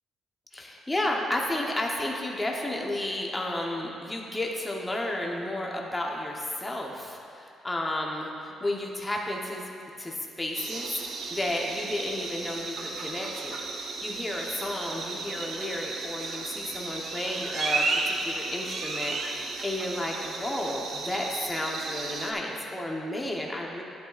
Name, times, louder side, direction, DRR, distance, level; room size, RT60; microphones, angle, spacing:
voice 1, 0.5-9.7 10.0-23.8, left 1 dB, 15° left, -1 dB, 1.0 m, -32 dB
sound 1, 10.5-22.3, right 3 dB, 65° right, 0.8 m, -34 dB
11.0 x 8.4 x 2.5 m, 2.6 s
cardioid pair, 90°, 0 cm